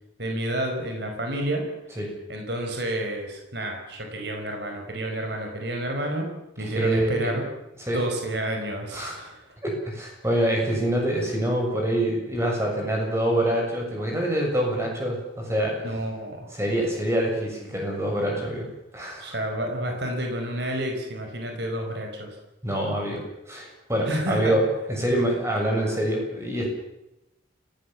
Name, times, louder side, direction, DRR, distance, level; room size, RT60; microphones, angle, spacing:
voice 1, 0.2-1.6 2.3-6.3 6.6-7.4 7.9-9.4 15.8-16.5 19.2-22.3 24.1-24.6, right 1 dB, 55° right, 3 dB, 5.1 m, -29 dB
voice 2, 6.6-7.4 7.8-8.0 8.9-9.2 9.6-15.8 16.5-18.7 18.9-19.3 22.6-23.2 23.5-26.7, right 1 dB, 15° right, -1 dB, 7.2 m, -25 dB
29.5 x 17.0 x 7.4 m, 0.89 s
head